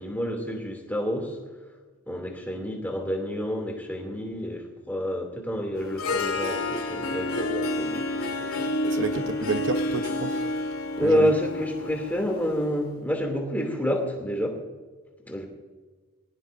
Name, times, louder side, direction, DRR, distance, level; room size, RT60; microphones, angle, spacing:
voice 1, 0.0-1.4 2.1-9.3 11.0-14.6 15.2-15.5, equal, 10° left, 1 dB, 2.8 m, -29 dB
Harp, 5.7-12.8, left 2 dB, 75° left, 1.9 m, -29 dB
voice 2, 8.9-10.4 11.0-11.3, right 3 dB, 55° right, 7 dB, 0.9 m, -30 dB
20.5 x 18.5 x 2.7 m, 1.4 s
head